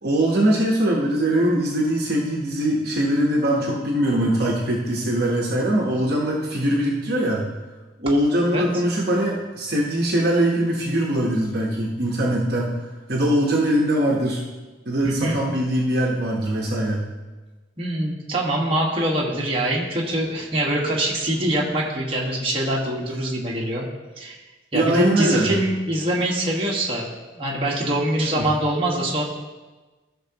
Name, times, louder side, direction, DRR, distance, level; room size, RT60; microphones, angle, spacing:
voice 1, 0.0-7.5 8.0-12.7 13.1-14.4 14.9-17.1 24.7-25.5 28.4-28.5, right 1 dB, 55° right, -2 dB, 1.0 m, -22 dB
voice 2, 15.0-15.4 17.8-23.9 24.2-24.4 24.7-27.1 27.3-29.2, right 1 dB, 30° right, -3 dB, 1.4 m, -24 dB
14.5 x 6.1 x 2.9 m, 1.2 s
head